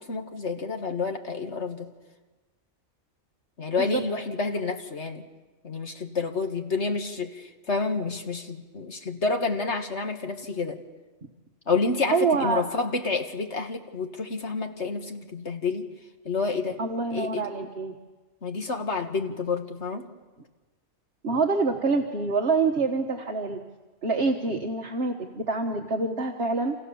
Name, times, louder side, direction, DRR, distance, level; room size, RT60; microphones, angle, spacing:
voice 1, 0.0-1.9 3.6-5.2 5.6-10.8 11.7-15.9 16.3-16.8 17.1-17.5 18.4-20.1, left 4 dB, 55° left, 5 dB, 2.0 m, -29 dB
voice 2, 12.1-12.7 16.8-18.0 21.2-23.6 24.0-26.8, right 4 dB, 50° right, 2 dB, 1.7 m, -26 dB
29.0 x 27.0 x 7.2 m, 1.2 s
omnidirectional pair, 1.4 m